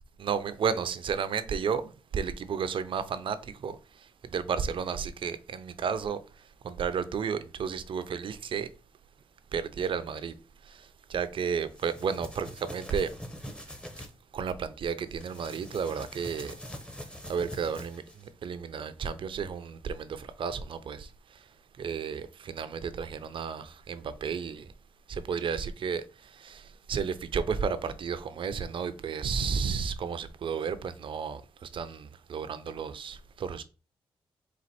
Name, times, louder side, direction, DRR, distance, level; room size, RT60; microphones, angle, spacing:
voice 1, 0.2-3.8 4.2-6.2 6.6-8.7 9.5-10.3 10.7-13.1 14.3-16.6 17.3-21.1 21.8-24.7 25.1-33.6, right 6 dB, 55° right, 0.5 m, -32 dB
sound 1, 11.6-14.1 15.1-18.3, equal, 10° left, 0.8 m, -44 dB
4.2 x 2.5 x 4.2 m
cardioid pair, 85°, 10 cm